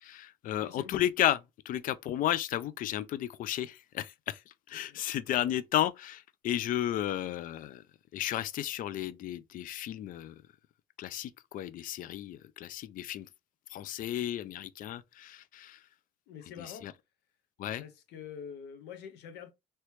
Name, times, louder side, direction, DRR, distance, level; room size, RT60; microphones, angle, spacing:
voice 1, 0.0-4.4 4.7-7.8 8.1-10.3 11.0-13.3 13.7-15.8 16.8-16.9 17.6-17.8, left 12 dB, 55° left, 0.4 m, -33 dB
voice 2, 0.5-0.9 4.8-5.0 16.3-16.9 17.8-19.5, left 7 dB, 85° left, 0.8 m, -46 dB
3.1 x 2.9 x 3.0 m
cardioid pair, 110°, 17 cm